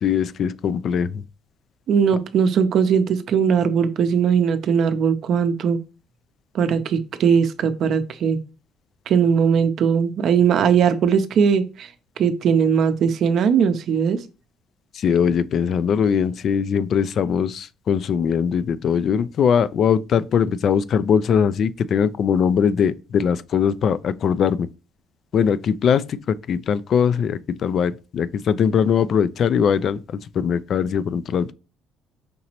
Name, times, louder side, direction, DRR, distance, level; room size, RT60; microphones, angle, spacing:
voice 1, 0.0-1.2 14.9-24.7 25.3-31.5, left 7 dB, 55° left, 0.3 m, -21 dB
voice 2, 1.9-5.8 6.5-8.4 9.1-11.9 12.2-14.2, right 7 dB, 60° right, 0.6 m, -19 dB
5.1 x 2.9 x 2.9 m
cardioid pair, 90°, 0 cm